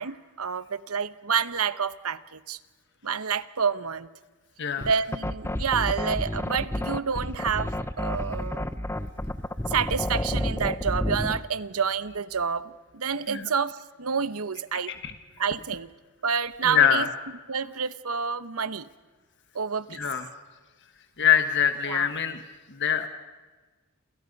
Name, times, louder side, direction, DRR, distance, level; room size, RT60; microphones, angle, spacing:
voice 1, 0.0-2.6 3.0-4.1 4.8-8.7 9.7-14.9 15.4-15.9 16.2-17.1 17.5-18.9 19.5-20.0 21.8-22.1, right 6 dB, 75° right, 15 dB, 1.0 m, -28 dB
sound 1, 4.8-11.4, left 1 dB, 10° left, 0.8 m, -30 dB
voice 2, 14.7-15.1 16.6-17.0 19.9-20.3 21.2-22.4 22.7-23.1, left 9 dB, 55° left, 8 dB, 1.4 m, -24 dB
28.5 x 28.5 x 5.4 m, 1.3 s
head